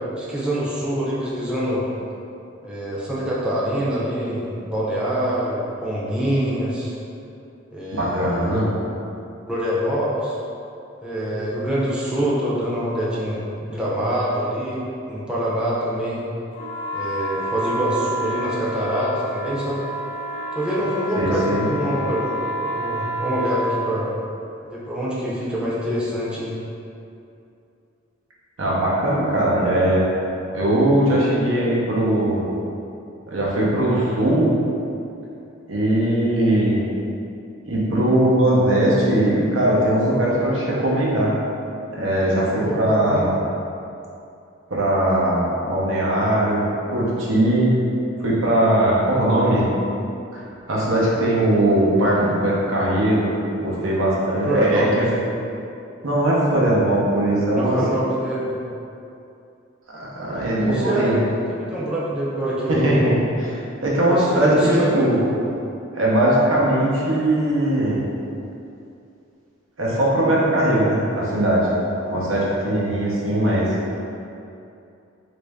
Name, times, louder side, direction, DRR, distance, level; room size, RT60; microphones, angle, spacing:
voice 1, 0.2-1.9 2.6-6.9 7.7-8.6 9.5-10.3 11.0-16.2 16.9-19.8 20.5-24.1 24.6-26.5 42.6-43.3 54.4-54.9 57.5-58.6 60.4-61.2 61.5-62.9 64.1-65.1, equal, 5° right, -8 dB, 0.5 m, -25 dB
voice 2, 7.9-8.7 21.2-21.7 28.6-30.1 30.5-32.4 33.3-34.5 35.7-36.8 37.7-41.3 41.9-43.3 44.7-47.7 48.2-49.7 50.3-50.4 50.7-55.0 56.0-57.8 59.9-61.2 62.7-65.2 65.9-68.0 69.8-71.7 72.1-73.8, right 1 dB, 85° right, -5 dB, 0.7 m, -20 dB
sound 1, 16.5-23.8, right 1 dB, 50° left, 0.6 m, -29 dB
3.0 x 2.6 x 3.4 m, 2.6 s
head